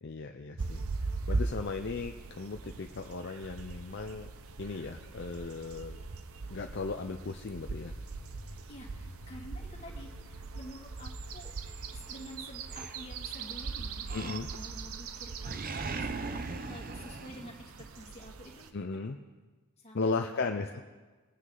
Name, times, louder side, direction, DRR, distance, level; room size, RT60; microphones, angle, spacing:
voice 1, 0.0-0.8 1.3-4.3 4.6-6.0 6.5-7.9 14.1-14.5 18.7-19.2 19.9-20.7, left 3 dB, 50° left, 5 dB, 0.5 m, -36 dB
sound 1, 0.6-18.7, right 3 dB, 75° right, 0.7 m, -40 dB
Walk footsteps, 4.3-11.4, left 2 dB, 70° left, 0.9 m, -53 dB
voice 2, 8.7-11.5 11.9-15.7 16.0-19.0 19.8-20.5, equal, 30° left, -2 dB, 2.3 m, -49 dB
Animal, 12.7-13.5 14.1-14.8 15.1-18.1, right 3 dB, 40° right, 0.6 m, -39 dB
22.0 x 9.4 x 3.9 m, 1.3 s
head